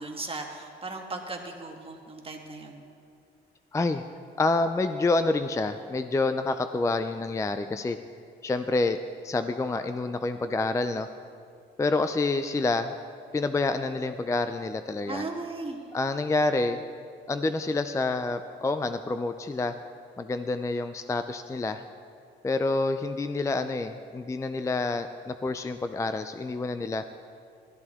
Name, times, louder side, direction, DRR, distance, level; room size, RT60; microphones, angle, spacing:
voice 1, 0.0-2.8 15.1-15.8, right 3 dB, 30° right, 2 dB, 1.5 m, -37 dB
voice 2, 3.7-4.0 4.4-8.0 8.4-9.0 9.2-11.1 11.8-12.9 13.3-15.3 15.9-16.8 17.3-19.8 20.2-21.8 22.4-27.0, left 3 dB, 15° left, 9 dB, 0.4 m, -28 dB
14.0 x 13.0 x 3.6 m, 2.3 s
cardioid pair, 90°, 20 cm